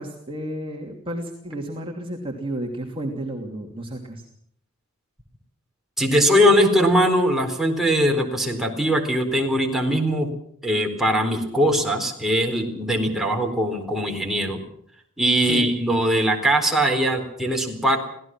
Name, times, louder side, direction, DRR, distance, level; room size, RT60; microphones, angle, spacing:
voice 1, 0.0-4.2 15.5-15.6, right 1 dB, 25° right, 0 dB, 2.9 m, -32 dB
voice 2, 6.0-10.3 10.6-14.6 15.2-18.0, equal, ahead, 0 dB, 4.1 m, -21 dB
25.5 x 17.5 x 6.1 m, 0.67 s
head